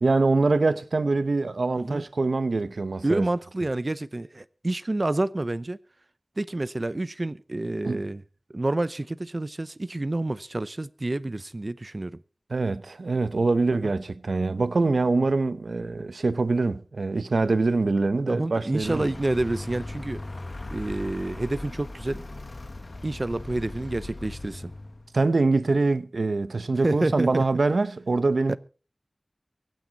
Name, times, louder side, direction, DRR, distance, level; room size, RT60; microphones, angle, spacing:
voice 1, 0.0-3.3 7.8-8.0 12.5-19.1 25.1-28.6, right 3 dB, 85° right, 0.8 m, -24 dB
voice 2, 3.0-5.8 6.4-8.2 8.5-12.2 13.7-13.9 18.3-20.2 20.7-22.2 23.0-24.7 26.8-27.4 28.5-28.6, right 2 dB, 45° right, 0.7 m, -28 dB
Vehicle, 18.8-25.2, left 2 dB, 50° left, 1.3 m, -39 dB
24.0 x 9.4 x 4.1 m
wide cardioid pair, 60°, 0 cm